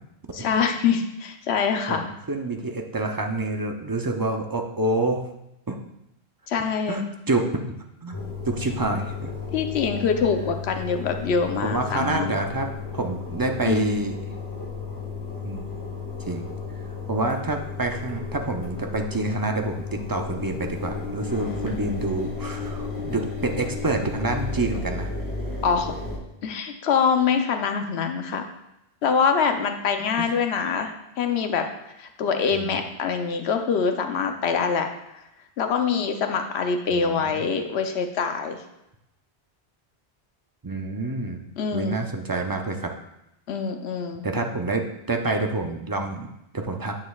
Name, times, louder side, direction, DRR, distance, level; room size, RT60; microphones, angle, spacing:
voice 1, 0.3-2.0 6.5-7.0 9.5-12.5 13.7-13.8 25.6-25.9 26.4-28.4 29.0-30.9 31.2-31.6 32.0-34.9 35.6-38.6 41.6-42.0 43.5-44.2, left 6 dB, 80° left, 6 dB, 1.0 m, -24 dB
voice 2, 1.9-5.3 5.7-5.8 6.9-7.7 8.0-8.2 8.5-9.3 11.6-14.2 15.4-15.6 16.3-16.5 17.1-25.1 30.2-30.3 32.5-32.8 36.9-37.3 40.6-41.4 41.7-42.9 44.2-47.0, right 2 dB, 30° right, 3 dB, 0.4 m, -27 dB
Engine, 8.1-26.2, left 4 dB, 20° left, 1.4 m, -33 dB
9.6 x 6.4 x 2.4 m, 0.86 s
omnidirectional pair, 1.1 m